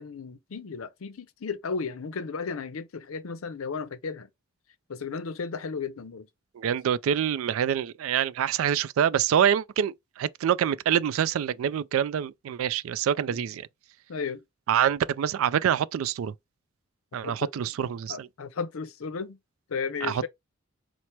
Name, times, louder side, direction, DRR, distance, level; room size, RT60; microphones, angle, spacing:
voice 1, 0.0-4.3 4.9-6.3 13.3-13.4 14.1-14.4 17.2-17.7 18.1-19.4 19.7-20.3, left 5 dB, 85° left, 0.5 m, -34 dB
voice 2, 6.6-13.7 14.7-16.3 17.1-18.3 20.0-20.3, right 9 dB, 80° right, 0.3 m, -26 dB
4.4 x 2.0 x 4.3 m
head